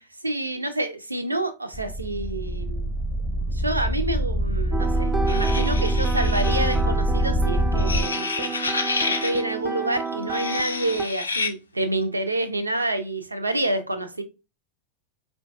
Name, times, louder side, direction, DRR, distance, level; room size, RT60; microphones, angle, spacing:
voice 1, 0.0-2.9 3.5-8.5 9.1-14.2, right 1 dB, 80° right, 0.5 m, -28 dB
sound 1, 1.7-8.0, right 1 dB, 10° left, 0.7 m, -24 dB
sound 2, 4.7-11.0, right 4 dB, 20° right, 0.3 m, -31 dB
sound 3, 5.3-6.8 7.8-9.4 10.2-11.5, left 4 dB, 75° left, 0.4 m, -29 dB
4.3 x 2.3 x 2.6 m
figure-of-eight pair, 90°, 0 cm